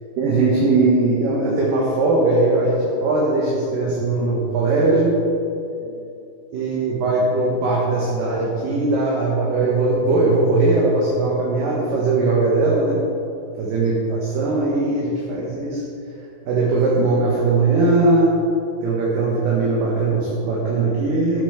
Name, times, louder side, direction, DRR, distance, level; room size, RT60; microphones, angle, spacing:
voice 1, 0.2-5.2 6.5-13.0 13.6-15.8 16.5-18.3 18.8-21.4, right 3 dB, 65° right, -4 dB, 2.9 m, -19 dB
14.5 x 7.3 x 5.0 m, 2.6 s
omnidirectional pair, 4.6 m